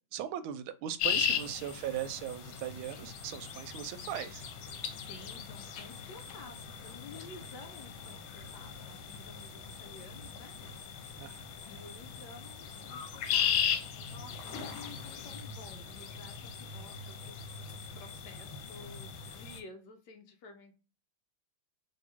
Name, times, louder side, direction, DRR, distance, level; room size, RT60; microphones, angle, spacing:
voice 1, 0.1-4.4 11.1-11.5, right 10 dB, 90° right, 11 dB, 1.4 m, -39 dB
sound 1, 1.0-19.6, left 8 dB, 85° left, 1.6 m, -38 dB
voice 2, 1.2-1.6 4.9-11.2 11.7-20.7, left 3 dB, 70° left, 5 dB, 1.1 m, -52 dB
3.5 x 2.9 x 4.2 m, 0.33 s
omnidirectional pair, 2.2 m